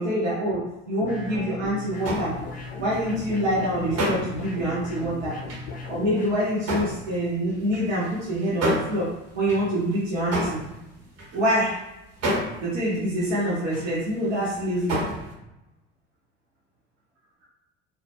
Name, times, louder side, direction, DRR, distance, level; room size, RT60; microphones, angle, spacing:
voice 1, 0.0-2.4 2.8-5.4 5.9-9.1 9.3-10.6 11.3-11.8 12.6-15.0, equal, 85° right, -6 dB, 0.7 m, -25 dB
sound 1, 1.0-6.3, left 4 dB, 25° left, 0.4 m, -37 dB
sound 2, 2.0-11.8 12.1-14.1 14.4-15.3, equal, 40° right, 0.7 m, -31 dB
2.2 x 2.1 x 2.7 m, 0.93 s
hypercardioid pair, 65°, 36 cm